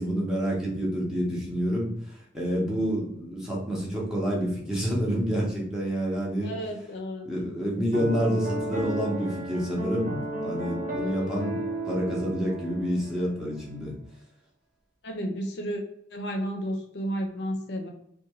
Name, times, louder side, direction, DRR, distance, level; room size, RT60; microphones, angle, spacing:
voice 1, 0.0-6.5 7.3-13.9, equal, 5° right, -5 dB, 0.7 m, -28 dB
voice 2, 6.4-7.3 15.0-15.8 16.1-17.9, equal, 65° left, 2 dB, 0.5 m, -32 dB
Piano, 7.9-13.2, right 1 dB, 45° right, 0.6 m, -33 dB
2.5 x 2.2 x 2.9 m, 0.72 s
head